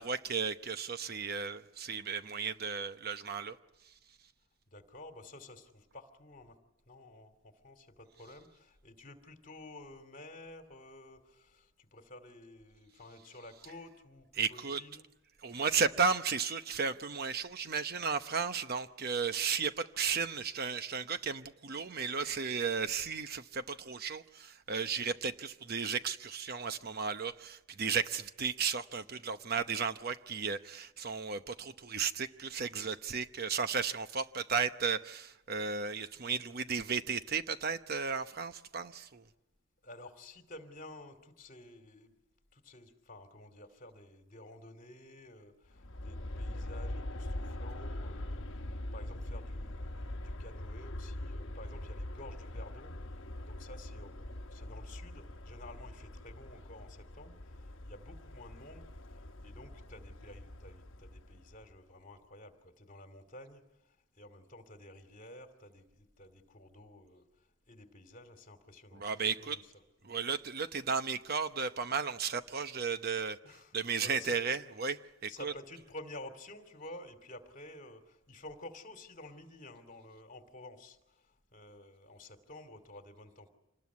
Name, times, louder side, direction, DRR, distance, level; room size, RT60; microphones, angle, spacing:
voice 1, 0.0-3.6 14.4-14.8 15.4-39.2 69.0-69.6 70.0-73.4 73.7-75.5, right 5 dB, 50° right, 0.9 m, -34 dB
voice 2, 4.7-6.6 6.9-15.0 39.8-42.1 42.5-58.9 59.4-69.1 69.4-69.8 73.4-74.4 75.3-83.5, left 1 dB, 40° left, 2.7 m, -52 dB
Aircraft, 45.7-61.7, left 1 dB, 65° left, 1.2 m, -43 dB
26.5 x 20.0 x 9.6 m
head